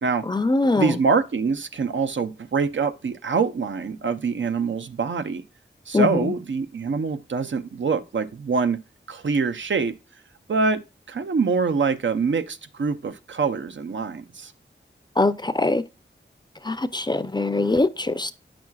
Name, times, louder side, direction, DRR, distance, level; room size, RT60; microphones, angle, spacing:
voice 1, 0.3-1.0 5.9-6.3 15.2-15.8 16.6-18.3, left 2 dB, 20° left, 0.5 m, -22 dB
voice 2, 0.8-5.4 5.9-8.8 9.1-9.9 10.5-10.8 11.1-14.5, right 5 dB, 70° right, 0.6 m, -24 dB
9.4 x 6.0 x 2.3 m
wide cardioid pair, 70°, 20 cm